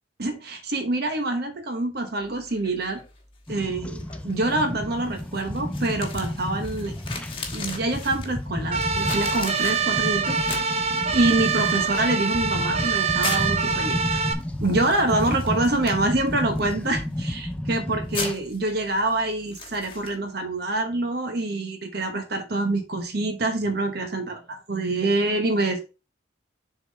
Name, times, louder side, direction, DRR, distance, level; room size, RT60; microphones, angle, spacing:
voice 1, 0.2-3.0 3.5-6.9 7.5-10.8 11.1-14.2 14.6-25.9, right 2 dB, 55° right, 6 dB, 1.0 m, -26 dB
sound 1, 2.2-20.1, left 4 dB, 25° left, 1.2 m, -40 dB
sound 2, 3.5-18.3, left 1 dB, 5° left, 0.3 m, -32 dB
sound 3, 8.7-14.3, right 5 dB, 35° right, 0.7 m, -25 dB
6.8 x 3.8 x 3.9 m, 0.30 s
head